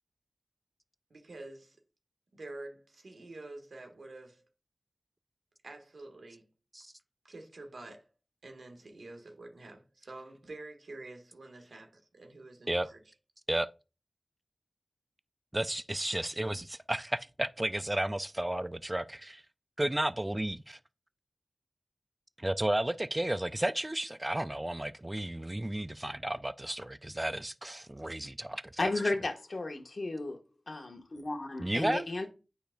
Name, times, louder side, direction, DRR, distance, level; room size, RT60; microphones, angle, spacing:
voice 1, 1.1-1.8 2.3-4.4 5.6-6.4 7.2-8.1 8.4-13.0, right 2 dB, 85° right, 1.4 m, -48 dB
voice 2, 15.5-19.4 19.8-20.8 22.4-28.7 31.6-32.0, right 1 dB, 20° right, 0.3 m, -33 dB
voice 3, 28.8-30.4 30.7-32.3, left 2 dB, 65° left, 1.2 m, -34 dB
8.8 x 5.0 x 2.2 m
wide cardioid pair, 50°, 0 cm